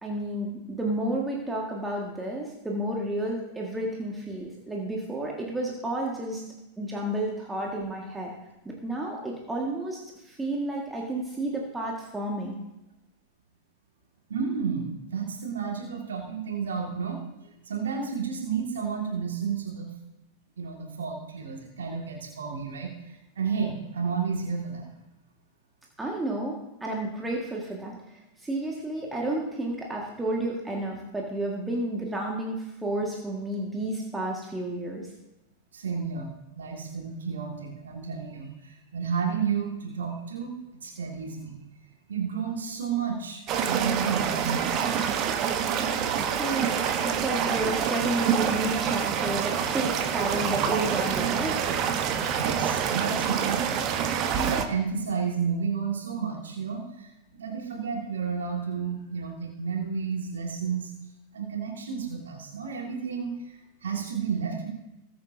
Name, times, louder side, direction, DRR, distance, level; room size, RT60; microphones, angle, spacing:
voice 1, 0.0-6.4 6.8-8.3 8.7-12.6 26.0-28.0 28.4-35.0 46.0-51.7, right 1 dB, 10° right, -2 dB, 1.8 m, -31 dB
voice 2, 14.3-17.2 17.6-19.9 20.6-24.9 35.7-40.5 40.8-41.6 42.1-44.9 52.4-57.1 57.4-60.9 61.3-64.7, right 6 dB, 65° right, -1 dB, 2.1 m, -31 dB
sound 1, 43.5-54.7, right 8 dB, 35° right, 1.1 m, -27 dB
19.5 x 7.7 x 2.8 m, 0.94 s
figure-of-eight pair, 90°, 0 cm